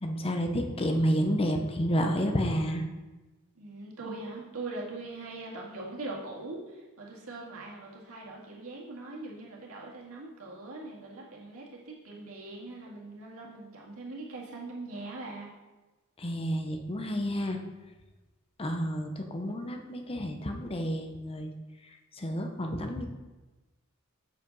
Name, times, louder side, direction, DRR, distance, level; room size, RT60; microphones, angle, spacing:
voice 1, 0.0-2.9 16.2-17.6 18.6-21.5 22.2-23.0, equal, 25° left, 5 dB, 0.7 m, -30 dB
voice 2, 3.6-15.5, right 2 dB, 75° right, -3 dB, 1.9 m, -41 dB
7.4 x 5.0 x 5.4 m, 1.2 s
head